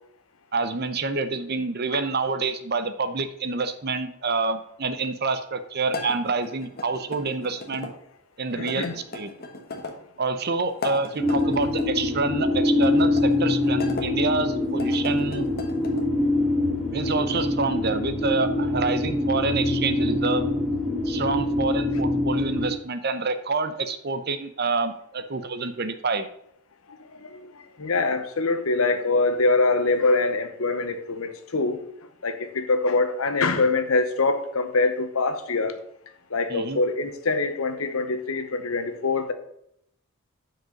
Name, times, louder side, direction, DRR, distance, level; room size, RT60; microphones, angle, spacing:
voice 1, 0.5-7.9 8.4-9.3 10.2-15.5 16.9-20.5 21.0-26.3 36.5-36.8, right 3 dB, 45° right, 0.7 m, -27 dB
sound 1, 5.9-7.9 8.7-10.0 10.7-11.9 12.7-14.1 14.7-16.1, left 3 dB, 45° left, 1.3 m, -37 dB
voice 2, 8.6-8.9 27.1-27.5 27.8-31.8 32.2-35.8 36.3-39.3, left 3 dB, 75° left, 0.9 m, -24 dB
sound 2, 11.2-22.7, left 2 dB, ahead, 1.5 m, -24 dB
6.1 x 5.0 x 6.5 m
head